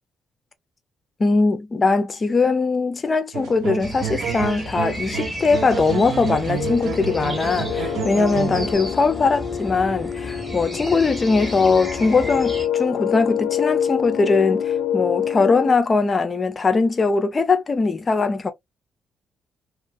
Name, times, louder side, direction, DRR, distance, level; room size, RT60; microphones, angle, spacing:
voice 1, 1.2-18.5, left 4 dB, 25° left, 0.4 m, -20 dB
sound 1, 3.3-8.7, right 9 dB, 80° right, 0.5 m, -30 dB
sound 2, 3.8-12.7, left 1 dB, 5° right, 0.9 m, -34 dB
sound 3, 6.6-15.7, left 8 dB, 85° left, 0.5 m, -27 dB
2.6 x 2.4 x 2.4 m
cardioid pair, 175°, 0 cm